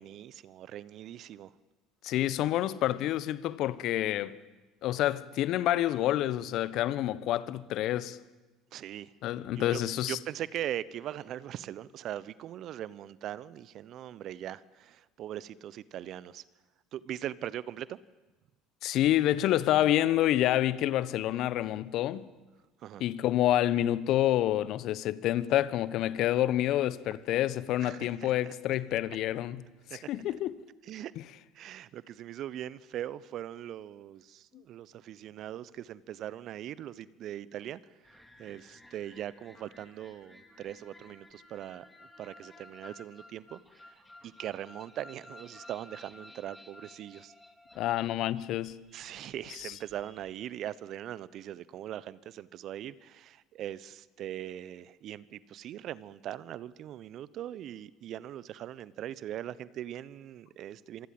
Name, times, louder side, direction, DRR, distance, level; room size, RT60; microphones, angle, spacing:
voice 1, 0.0-1.5 8.7-9.1 9.5-9.8 10.1-16.4 16.9-18.0 22.8-23.0 27.8-28.5 29.9-30.0 30.8-31.1 31.5-38.1 38.4-41.9 42.2-47.3 48.9-61.1, right 11 dB, 55° right, 1.0 m, -41 dB
voice 2, 2.0-4.4 4.8-8.2 9.2-10.2 18.8-22.3 23.0-29.7 30.1-30.6 47.8-48.7 49.6-49.7, left 13 dB, 60° left, 1.1 m, -28 dB
sound 1, 38.0-50.4, left 1 dB, 10° left, 4.8 m, -55 dB
26.5 x 24.5 x 7.9 m
hypercardioid pair, 70°, 0 cm